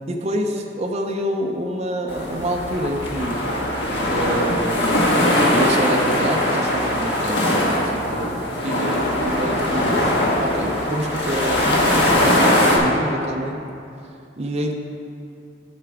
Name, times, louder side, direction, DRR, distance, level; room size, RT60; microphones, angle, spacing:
voice 1, 0.1-3.4 4.0-5.0 5.5-10.1 10.4-13.6 14.4-14.7, right 1 dB, 35° right, 1 dB, 0.5 m, -27 dB
sound 1, 2.1-12.8, left 1 dB, 70° left, 1.4 m, -20 dB
12.5 x 5.9 x 3.4 m, 2.6 s
head